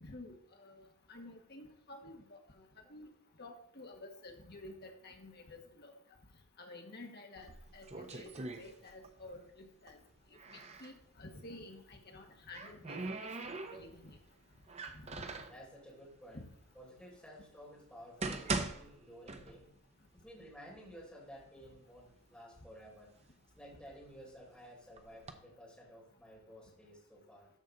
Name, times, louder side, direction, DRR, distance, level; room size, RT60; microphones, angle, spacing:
voice 1, 0.0-2.4 2.9-3.1 3.4-5.9 6.6-10.0 10.5-14.2 14.9-15.0 16.3-16.5, left 2 dB, 45° left, 3 dB, 1.6 m, -51 dB
sound 1, 7.4-9.3 9.5-11.0 12.1-14.1 14.7-15.6 16.4-16.5 17.1-17.2 17.9-19.9 20.2-20.3 21.0-21.1 21.5-22.1 22.7-24.3 25.0-25.3, right 3 dB, 30° right, 0.7 m, -42 dB
voice 2, 15.5-19.7 20.2-23.1 23.6-27.5, equal, 5° left, -5 dB, 3.7 m, -54 dB
13.5 x 5.5 x 3.9 m, 0.74 s
head